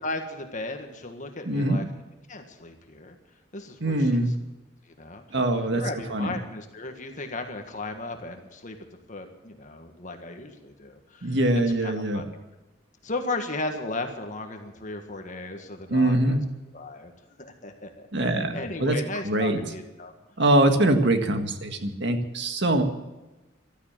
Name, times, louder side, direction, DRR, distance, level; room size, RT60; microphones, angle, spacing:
voice 1, 0.0-1.8 2.3-3.2 3.5-4.2 4.9-5.4 5.7-8.8 9.1-12.2 13.0-16.4 16.7-17.1 17.4-20.1, left 2 dB, 40° left, 5 dB, 1.7 m, -36 dB
voice 2, 1.5-1.8 3.8-4.3 5.3-5.8 6.1-6.3 11.2-12.2 15.9-16.4 18.1-19.6 20.4-22.8, right 1 dB, 60° right, 6 dB, 1.8 m, -23 dB
14.5 x 12.5 x 7.4 m, 1.1 s
head